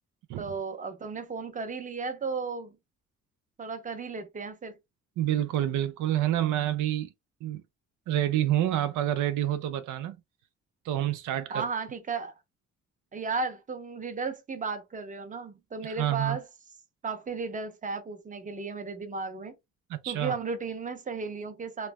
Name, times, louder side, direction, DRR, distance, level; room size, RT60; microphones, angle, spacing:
voice 1, 0.4-2.7 3.6-4.8 11.5-12.4 13.1-16.4 17.0-19.5 20.1-21.9, right 4 dB, 25° right, 0.7 m, -34 dB
voice 2, 5.2-7.1 7.4-7.6 8.1-10.2 10.8-11.6 15.8-16.4 19.9-20.3, right 12 dB, 80° right, 0.5 m, -28 dB
3.1 x 2.0 x 2.2 m
cardioid pair, 90°, 30 cm